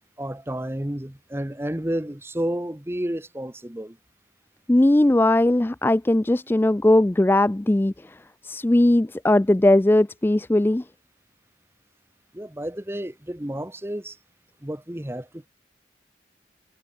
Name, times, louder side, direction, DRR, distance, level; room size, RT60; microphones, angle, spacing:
voice 1, 0.2-4.0 12.3-14.2 14.6-15.5, right 1 dB, 15° right, 0.9 m, -31 dB
voice 2, 4.7-7.9 8.4-10.8, left 1 dB, 10° left, 0.3 m, -19 dB
head